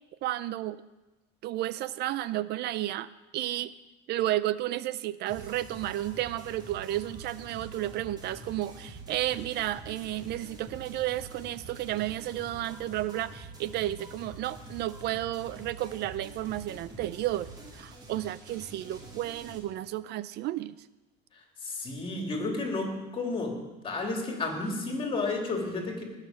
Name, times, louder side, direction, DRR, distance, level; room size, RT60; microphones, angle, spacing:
voice 1, 0.2-0.8 1.4-3.7 4.1-20.8, right 14 dB, 50° right, 16 dB, 0.5 m, -32 dB
sound 1, 5.3-19.6, right 2 dB, 20° right, 3.0 m, -46 dB
voice 2, 21.6-23.6 23.8-26.0, left 3 dB, 25° left, 1 dB, 3.2 m, -31 dB
19.0 x 6.6 x 7.7 m, 1.1 s
cardioid pair, 140°, 21 cm